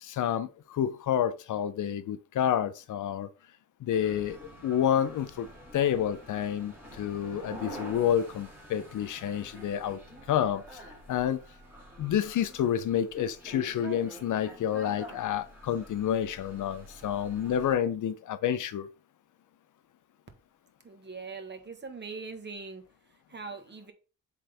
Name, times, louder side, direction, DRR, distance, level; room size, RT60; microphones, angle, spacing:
voice 1, 0.0-3.3 3.8-5.5 5.7-10.0 10.3-11.4 12.0-18.9, left 9 dB, 65° left, 0.6 m, -29 dB
sound 1, 3.9-17.7, equal, 5° right, 3.1 m, -47 dB
voice 2, 20.8-22.8 23.3-23.9, right 4 dB, 35° right, 1.4 m, -41 dB
7.5 x 3.9 x 3.4 m
cardioid pair, 90°, 33 cm